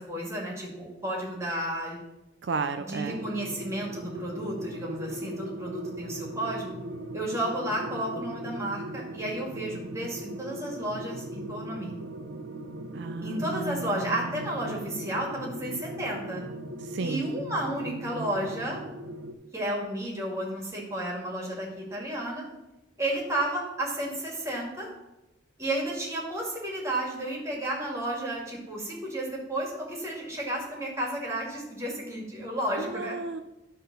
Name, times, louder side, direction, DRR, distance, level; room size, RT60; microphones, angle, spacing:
voice 1, 0.0-2.0 2.8-6.8 7.1-12.0 13.2-16.4 17.0-18.8 19.5-22.5 23.0-24.9 25.6-33.2, right 1 dB, 15° right, -2 dB, 2.2 m, -32 dB
voice 2, 2.4-3.2 12.9-14.5 16.8-17.3 32.8-33.4, right 4 dB, 60° right, 8 dB, 0.4 m, -34 dB
sound 1, 3.1-19.3, right 1 dB, 85° right, 0.8 m, -39 dB
11.0 x 3.8 x 6.8 m, 0.95 s
head